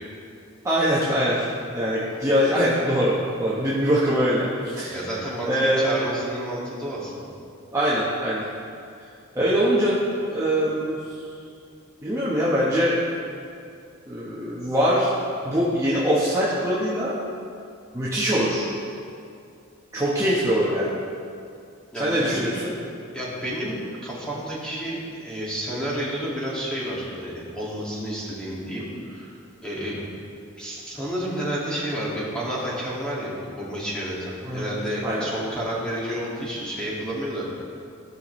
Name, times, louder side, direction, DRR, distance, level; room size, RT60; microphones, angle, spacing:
voice 1, 0.6-5.0 5.5-6.0 7.7-8.4 9.3-9.9 10.3-11.0 12.0-12.9 14.1-15.1 15.4-17.1 17.9-18.7 19.9-20.9 21.9-22.7 34.4-34.7 35.0-35.3, equal, 15° right, -8 dB, 1.1 m, -23 dB
voice 2, 4.9-7.3 21.9-22.5 23.1-23.8 24.0-29.4 29.6-30.0 30.6-37.4, equal, 5° left, -7 dB, 2.1 m, -30 dB
16.0 x 5.8 x 3.2 m, 2.4 s
head